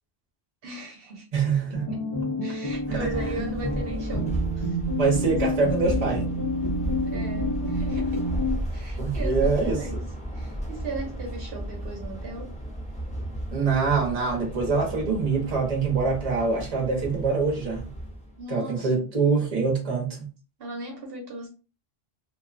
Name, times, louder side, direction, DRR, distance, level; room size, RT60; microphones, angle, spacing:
voice 1, 0.6-1.3 1.9-2.0 2.4-4.8 7.0-8.3 8.7-10.1 10.3-12.6 18.4-19.1 20.6-21.5, right 2 dB, 70° right, 0.9 m, -37 dB
voice 2, 1.3-1.9 2.9-3.1 5.0-6.3 9.0-9.8 13.5-17.9 18.5-20.3, right 4 dB, 40° right, 0.8 m, -24 dB
sound 1, 1.7-8.6, left 1 dB, 35° left, 0.8 m, -29 dB
sound 2, 2.7-18.4, equal, 10° left, 0.5 m, -33 dB
2.6 x 2.2 x 2.4 m
omnidirectional pair, 1.0 m